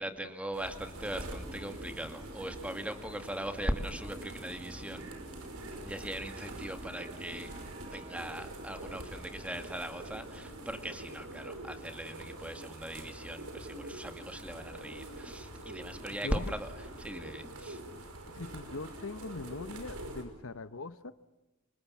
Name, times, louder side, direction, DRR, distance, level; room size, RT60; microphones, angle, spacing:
voice 1, 0.0-5.1 5.8-7.5 7.9-16.7 17.0-17.8, right 1 dB, 5° right, 7 dB, 2.0 m, -39 dB
sound 1, 0.5-20.2, right 1 dB, 80° right, 5.6 m, -45 dB
sound 2, 0.9-12.3, right 1 dB, 30° right, 1.4 m, -50 dB
voice 2, 16.2-16.5 18.3-21.1, left 3 dB, 70° left, 13 dB, 0.9 m, -41 dB
28.5 x 25.5 x 7.4 m, 1.1 s
head